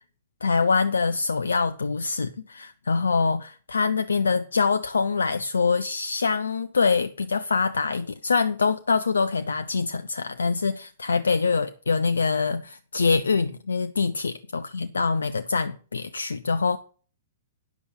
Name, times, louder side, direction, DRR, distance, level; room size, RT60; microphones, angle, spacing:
voice 1, 0.4-16.8, left 4 dB, 80° left, 0.7 m, -24 dB
10.5 x 7.0 x 5.7 m
figure-of-eight pair, 115°, 0 cm